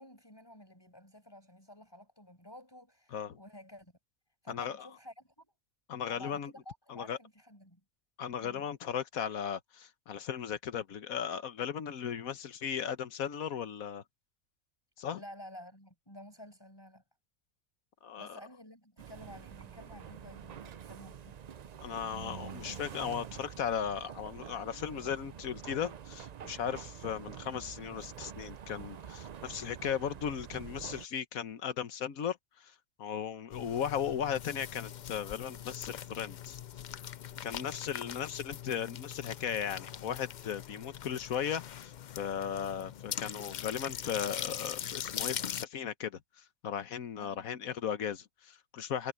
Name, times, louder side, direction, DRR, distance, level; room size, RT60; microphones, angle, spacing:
voice 1, 0.0-3.9 4.4-5.5 6.1-7.8 8.4-8.7 15.1-17.0 18.2-21.4 33.6-33.8 47.2-47.5, left 1 dB, 15° left, 7.3 m, -52 dB
voice 2, 4.5-4.9 5.9-6.5 6.9-7.2 8.2-14.0 15.0-15.2 18.0-18.4 21.8-32.7 33.0-36.6 37.4-49.1, left 8 dB, 90° left, 1.5 m, -37 dB
sound 1, 19.0-31.1, right 8 dB, 75° right, 0.3 m, -47 dB
sound 2, 33.5-45.6, left 9 dB, 70° left, 0.4 m, -42 dB
omnidirectional pair, 1.4 m